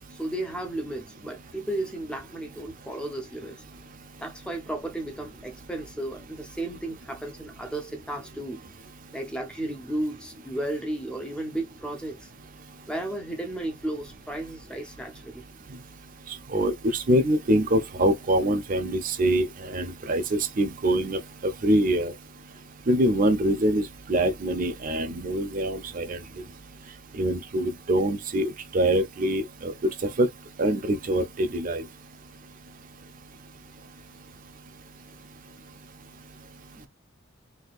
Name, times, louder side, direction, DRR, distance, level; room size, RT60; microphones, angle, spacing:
voice 1, 0.1-3.6 4.2-8.6 9.1-12.3 12.9-15.4 36.8-36.9, right 1 dB, 5° left, 0.7 m, -34 dB
voice 2, 16.5-22.1 22.9-26.2 27.2-29.7 30.2-30.3 30.6-31.8, right 1 dB, 45° right, 0.5 m, -24 dB
4.1 x 2.8 x 2.4 m
head